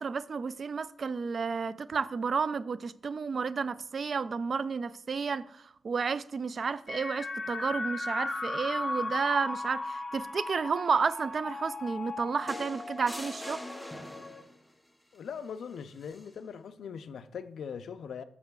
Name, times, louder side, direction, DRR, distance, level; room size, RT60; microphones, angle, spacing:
voice 1, 0.0-13.6, right 5 dB, 50° right, 0.3 m, -31 dB
sound 1, 6.9-14.4, left 2 dB, 30° left, 0.7 m, -37 dB
sound 2, 12.5-14.6 16.0-16.2, left 1 dB, ahead, 0.9 m, -43 dB
voice 2, 15.1-18.2, left 7 dB, 85° left, 0.4 m, -41 dB
13.0 x 5.5 x 2.3 m
wide cardioid pair, 105°, 0 cm